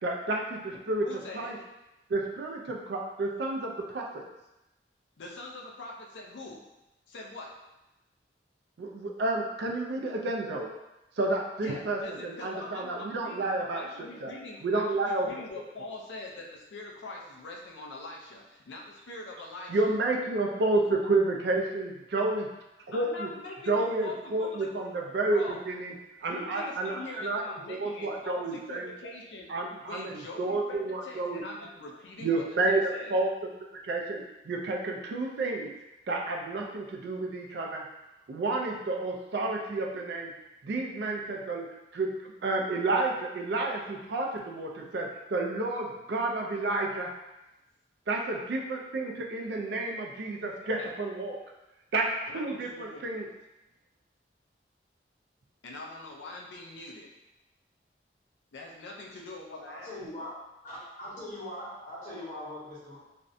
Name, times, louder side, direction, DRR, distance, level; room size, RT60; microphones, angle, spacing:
voice 1, 0.0-1.1 1.3-1.6 2.1-4.2 8.8-10.7 11.2-14.3 14.6-15.3 19.7-22.5 22.9-23.3 23.7-25.9 26.2-27.4 27.7-28.9 29.5-31.4 32.2-33.3 33.8-35.7 36.1-37.8 38.3-40.3 40.6-41.7 41.9-47.1 48.1-51.4 51.9-52.1 52.3-53.3, right 2 dB, 65° right, 0 dB, 0.4 m, -30 dB
voice 2, 1.0-1.5 5.2-6.6 7.1-7.5 11.6-19.9 22.9-24.7 25.3-25.6 26.2-29.5 29.8-33.2 50.6-50.9 52.3-53.1 55.6-57.1 58.5-59.9, left 2 dB, 85° left, -1 dB, 0.5 m, -43 dB
voice 3, 59.6-60.3 60.6-63.0, left 1 dB, 40° left, -9 dB, 1.0 m, -41 dB
2.5 x 2.1 x 2.5 m, 0.97 s
head